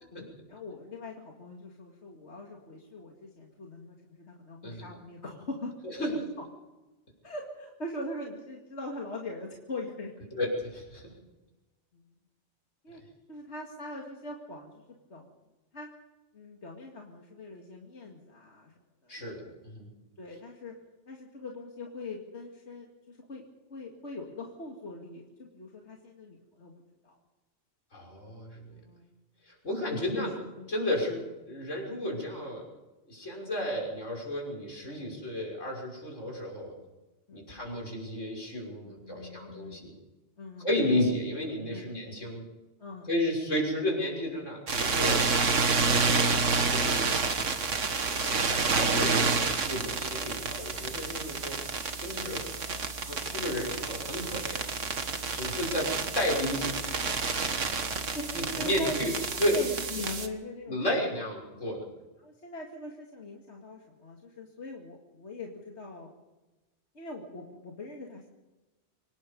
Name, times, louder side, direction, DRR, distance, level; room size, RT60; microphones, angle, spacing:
voice 1, 0.1-5.7 6.0-6.2 7.2-10.1 11.9-12.1 12.8-13.0 13.3-14.7 15.1-15.3 15.7-15.9 16.3-18.7 19.0-19.5 20.2-20.7 21.1-23.4 23.7-26.7 27.0-27.2 28.7-29.1 29.9-30.3 30.5-30.7 32.1-32.2 37.3-37.4 38.8-39.9 40.4-40.7 41.7-41.9 42.8-43.1 58.1-59.0 59.5-60.8 62.2-66.1 66.9-68.3, left 2 dB, 65° left, 0 dB, 2.5 m, -42 dB
voice 2, 10.4-11.1 19.1-19.9 27.9-28.7 29.5-30.3 30.7-32.6 33.1-36.7 37.3-39.9 40.6-42.4 43.1-45.2 46.0-47.1 48.0-51.6 52.0-52.4 53.0-54.7 55.3-56.9 58.3-59.1 59.4-59.6 60.7-61.8, left 1 dB, 90° left, 0 dB, 6.5 m, -32 dB
sound 1, 44.7-60.3, right 4 dB, 85° right, 1.9 m, -29 dB
25.0 x 19.5 x 5.4 m, 1.1 s
omnidirectional pair, 1.2 m